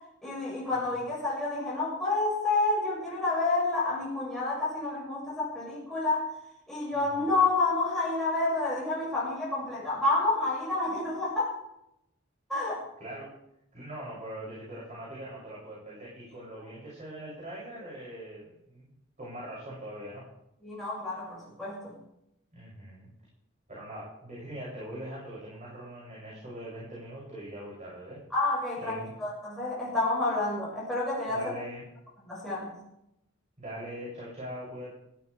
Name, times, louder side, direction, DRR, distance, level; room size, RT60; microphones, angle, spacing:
voice 1, 0.2-6.3 6.7-11.6 12.5-12.8 20.6-21.9 28.3-31.5 32.2-32.7, left 2 dB, ahead, -8 dB, 6.9 m, -29 dB
voice 2, 6.9-7.3 13.0-13.3 13.7-18.8 19.2-20.2 22.5-23.1 23.7-28.2 28.8-29.1 31.3-31.8 33.6-34.9, right 1 dB, 35° right, -7 dB, 7.7 m, -42 dB
17.0 x 15.5 x 3.6 m, 0.82 s
head